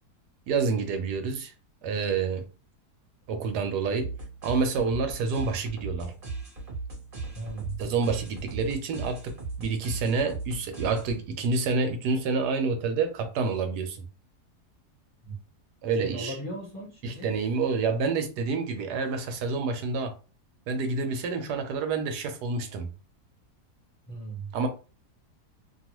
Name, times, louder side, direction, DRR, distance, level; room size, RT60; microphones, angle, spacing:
voice 1, 0.5-1.5 1.8-2.5 3.3-4.1 4.4-6.1 7.8-14.0 15.8-16.4 17.0-20.1 20.7-22.9 24.5-24.7, right 4 dB, 90° right, 1.2 m, -28 dB
sound 1, 4.0-11.4, right 3 dB, 40° right, 1.0 m, -38 dB
voice 2, 7.3-7.8 15.2-15.4 16.0-17.3 24.1-24.6, right 2 dB, 15° left, 0.9 m, -37 dB
2.9 x 2.3 x 2.9 m
omnidirectional pair, 1.7 m